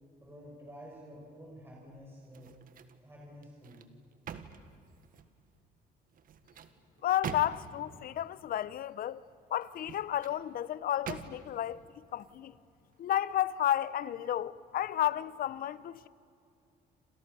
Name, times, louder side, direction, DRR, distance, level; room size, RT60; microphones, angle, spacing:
voice 1, 0.2-2.6 3.0-3.9, equal, 15° right, 6.8 m, -50 dB
sound 1, 2.3-3.0 3.4-5.4 6.1-7.9 9.6-10.4 11.0-11.6 12.1-12.3, right 7 dB, 55° right, 1.8 m, -45 dB
voice 2, 7.0-9.2 9.5-12.5 13.0-16.1, left 12 dB, 60° left, 0.9 m, -32 dB
29.0 x 27.5 x 7.1 m
cardioid pair, 110°, 17 cm